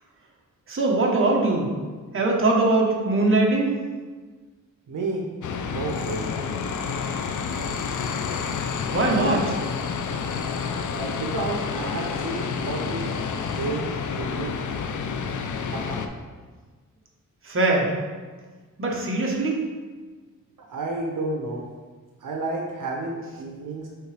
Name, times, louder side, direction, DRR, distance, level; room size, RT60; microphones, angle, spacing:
voice 1, 0.7-1.7 2.1-3.8 8.9-9.6 17.4-17.9 18.8-19.6, right 2 dB, 40° right, -1 dB, 1.2 m, -21 dB
voice 2, 4.9-5.3 5.7-6.3 10.9-14.6 15.6-16.0 20.7-21.7 22.2-23.9, right 3 dB, 70° right, 0 dB, 0.9 m, -31 dB
sound 1, 5.4-16.1, left 6 dB, 65° left, 0.6 m, -29 dB
8.0 x 3.7 x 3.4 m, 1.4 s
wide cardioid pair, 105°, 33 cm